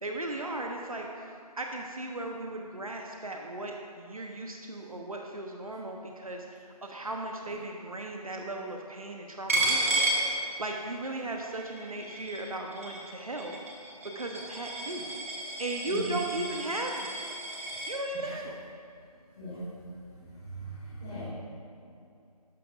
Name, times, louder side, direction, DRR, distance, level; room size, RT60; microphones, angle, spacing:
voice 1, 0.0-1.1 1.6-10.1 10.6-13.6 14.1-15.3 15.6-17.2 17.9-18.6, right 2 dB, 60° right, 1 dB, 0.9 m, -36 dB
Coin (dropping), 9.5-11.0 11.3-17.9, right 2 dB, 20° right, 1.0 m, -32 dB
voice 2, 20.2-21.2, equal, 10° left, -13 dB, 0.8 m, -41 dB
12.0 x 12.0 x 2.5 m, 2.6 s
figure-of-eight pair, 160°, 20 cm